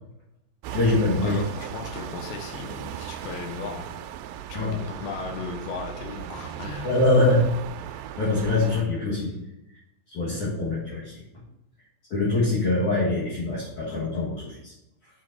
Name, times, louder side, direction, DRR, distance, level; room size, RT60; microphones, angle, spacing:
sound 1, 0.6-8.8, right 9 dB, 85° right, 2.5 m, -37 dB
voice 1, 0.7-1.4 4.5-4.8 6.8-7.5 8.2-9.4 10.1-11.1 12.1-14.7, left 2 dB, 55° left, -6 dB, 2.4 m, -23 dB
voice 2, 1.2-3.9 4.5-7.0, left 5 dB, 75° left, 2 dB, 2.5 m, -36 dB
7.5 x 5.2 x 4.1 m, 0.89 s
omnidirectional pair, 5.3 m